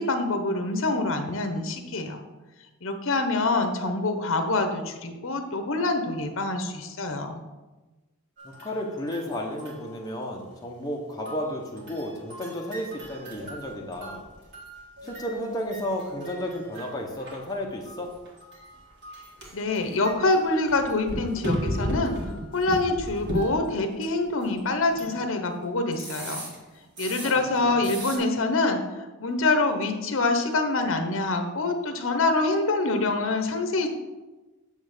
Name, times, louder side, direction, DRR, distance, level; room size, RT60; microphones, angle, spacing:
voice 1, 0.0-2.2 2.8-7.4 19.5-22.2 22.5-26.4 27.0-28.8 29.2-33.9, left 2 dB, 65° left, 7 dB, 0.8 m, -25 dB
voice 2, 8.4-14.3 15.0-18.1 27.2-28.0, equal, 15° left, 0 dB, 1.0 m, -33 dB
sound 1, 8.4-10.4 11.3-25.3 25.9-27.6 27.8-28.2, equal, 50° right, 2.0 m, -37 dB
8.6 x 3.3 x 6.6 m, 1.1 s
head